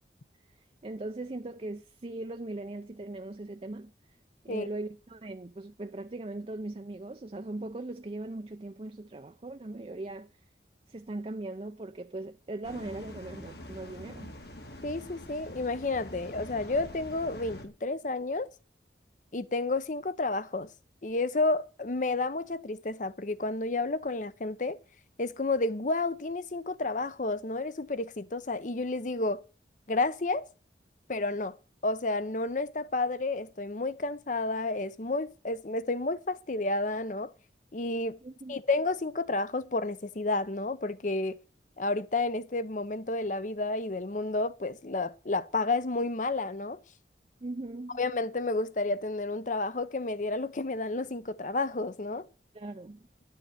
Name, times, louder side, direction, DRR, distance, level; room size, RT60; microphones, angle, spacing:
voice 1, 0.8-3.9 4.4-10.3 10.9-14.3 38.2-38.6 47.4-48.0 52.5-53.1, right 2 dB, 35° right, 0.5 m, -39 dB
sound 1, 12.6-17.7, left 1 dB, 65° left, 2.2 m, -45 dB
voice 2, 14.8-18.5 19.3-20.7 21.0-24.8 25.2-29.4 29.9-30.5 31.1-31.6 31.8-37.3 37.7-38.2 38.5-41.4 41.8-46.8 48.0-52.3, left 2 dB, 45° left, 0.7 m, -31 dB
11.0 x 6.7 x 8.9 m
head